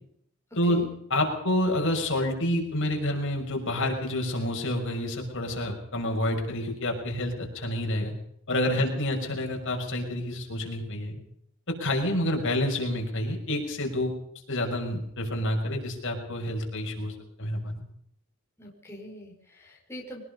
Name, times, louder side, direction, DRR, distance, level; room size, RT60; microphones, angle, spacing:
voice 1, 0.6-8.1 8.5-11.1 11.7-14.1 14.5-17.8, left 1 dB, 60° left, 2 dB, 6.3 m, -28 dB
voice 2, 18.6-20.2, equal, 10° left, -2 dB, 5.4 m, -43 dB
23.5 x 20.5 x 5.5 m, 0.70 s
head